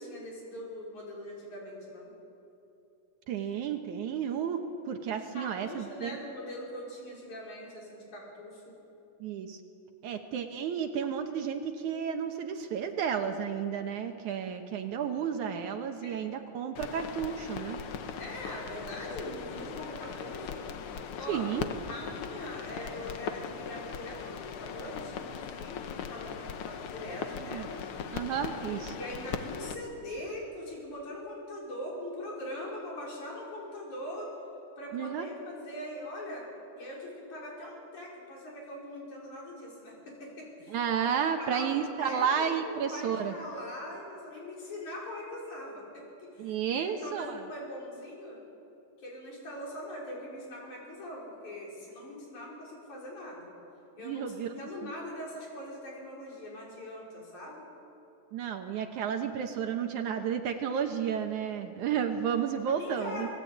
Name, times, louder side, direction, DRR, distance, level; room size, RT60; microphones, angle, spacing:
voice 1, 0.0-2.1 5.3-8.7 16.0-16.1 18.2-20.6 21.2-21.4 21.9-27.8 28.4-34.3 34.8-36.5 36.8-40.8 41.2-48.4 49.0-53.5 54.0-57.6 62.8-63.3, left 1 dB, 60° left, -3 dB, 6.6 m, -42 dB
voice 2, 3.3-6.2 9.2-9.6 10.0-17.8 21.3-21.7 27.5-27.7 28.1-28.9 34.9-35.3 40.7-43.3 46.4-47.4 54.0-54.5 54.8-54.9 58.3-63.3, right 7 dB, 70° right, 5 dB, 2.4 m, -32 dB
sound 1, 16.8-29.8, left 7 dB, 75° left, 1.3 m, -39 dB
28.0 x 17.5 x 8.5 m, 3.0 s
omnidirectional pair, 3.9 m